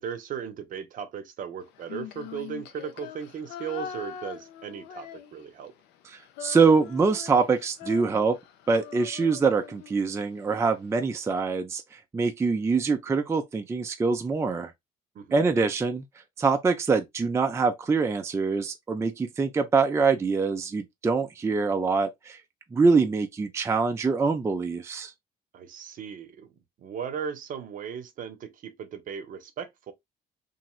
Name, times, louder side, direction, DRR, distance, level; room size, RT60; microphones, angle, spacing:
voice 1, 0.0-5.7 15.1-15.4 25.5-26.5 26.8-29.9, right 7 dB, 55° right, 0.7 m, -37 dB
Female singing, 1.8-5.7 5.9-10.2, left 8 dB, 85° left, 0.5 m, -42 dB
voice 2, 6.1-8.4 8.7-14.7 15.3-16.0 16.4-22.4 22.7-25.1, right 4 dB, 15° right, 0.4 m, -24 dB
3.0 x 2.6 x 2.3 m
cardioid pair, 110°, 17 cm